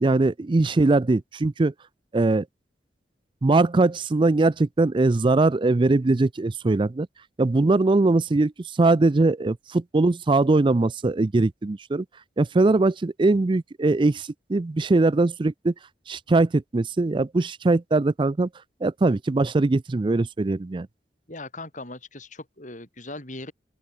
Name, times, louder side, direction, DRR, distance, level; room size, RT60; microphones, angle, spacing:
voice 1, 0.0-1.7 2.1-2.4 3.4-7.1 7.4-8.5 8.8-12.0 12.4-15.7 16.1-18.5 18.8-20.9, right 2 dB, 30° right, 0.4 m, -21 dB
voice 2, 21.3-23.5, left 2 dB, 45° left, 6.0 m, -39 dB
open air
head